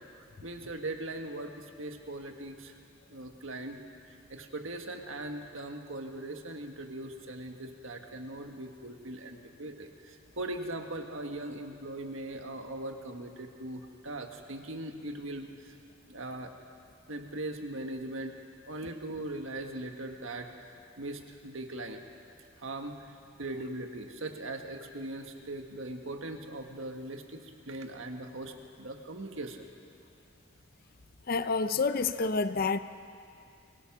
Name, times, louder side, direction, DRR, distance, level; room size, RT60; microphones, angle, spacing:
voice 1, 0.4-2.7 3.1-15.8 16.1-16.5 17.1-18.4 18.6-22.0 22.6-29.7, right 2 dB, 70° right, 4 dB, 1.6 m, -40 dB
voice 2, 31.3-32.8, left 4 dB, 45° left, 11 dB, 0.6 m, -28 dB
24.5 x 18.0 x 6.0 m, 2.4 s
head